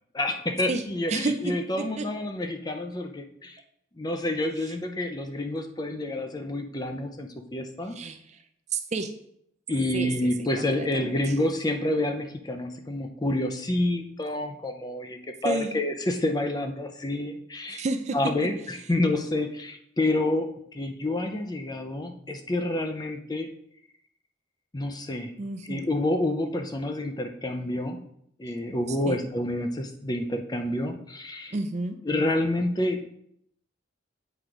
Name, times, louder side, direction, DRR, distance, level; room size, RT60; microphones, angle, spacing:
voice 1, 0.1-3.6 4.0-8.0 9.7-17.8 18.1-23.5 24.7-25.3 25.6-28.0 28.4-31.5 32.0-33.0, left 1 dB, 20° left, 5 dB, 0.5 m, -28 dB
voice 2, 7.9-8.4 8.7-9.1 9.9-10.3 10.6-11.2 15.4-15.7 17.7-18.2 25.4-25.8 28.9-29.2 31.5-32.0, right 3 dB, 35° right, 7 dB, 0.4 m, -31 dB
8.0 x 3.8 x 4.6 m, 0.73 s
head